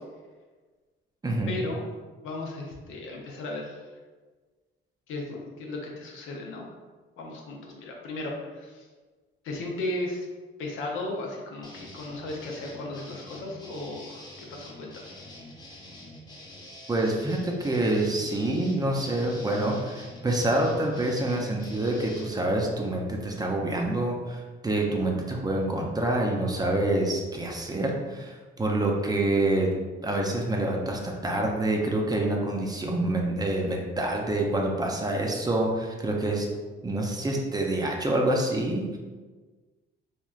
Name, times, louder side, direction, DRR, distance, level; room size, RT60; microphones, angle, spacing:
voice 1, 1.5-1.9 2.2-3.8 5.1-6.7 7.2-8.9 9.4-10.3 10.6-15.2, left 2 dB, 85° left, 0 dB, 0.6 m, -35 dB
sound 1, 11.6-22.3, left 1 dB, 20° left, 0.7 m, -46 dB
voice 2, 16.9-29.7 30.0-36.5 36.8-39.0, right 1 dB, 20° right, 0 dB, 0.5 m, -27 dB
3.1 x 2.4 x 2.3 m, 1.4 s
cardioid pair, 90°, 20 cm